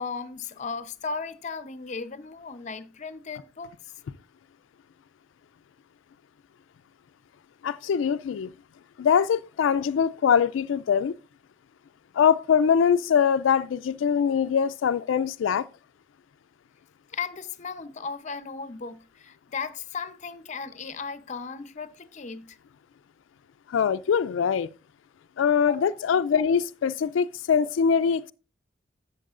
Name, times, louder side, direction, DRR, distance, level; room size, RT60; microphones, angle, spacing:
voice 1, 0.0-3.7 17.1-22.6 25.6-26.0, left 5 dB, 40° left, 0.7 m, -36 dB
voice 2, 7.6-8.5 9.0-11.2 12.1-15.7 23.7-24.7 25.4-28.3, left 7 dB, 90° left, 0.3 m, -23 dB
13.0 x 7.7 x 2.5 m
head